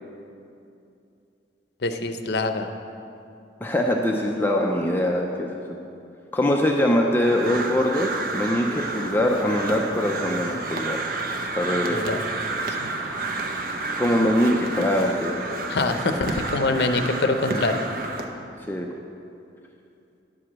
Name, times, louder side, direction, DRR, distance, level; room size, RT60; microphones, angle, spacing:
voice 1, 1.8-2.7 11.9-12.2 12.7-12.9 15.7-17.8, left 3 dB, 65° left, 7 dB, 0.6 m, -25 dB
voice 2, 3.6-5.6 6.3-11.0 11.5-12.0 14.0-15.4 18.7-18.9, left 1 dB, 10° left, 0 dB, 0.5 m, -23 dB
Crow, 7.2-18.3, right 3 dB, 55° right, 0.7 m, -30 dB
10.0 x 4.8 x 7.3 m, 2.6 s
head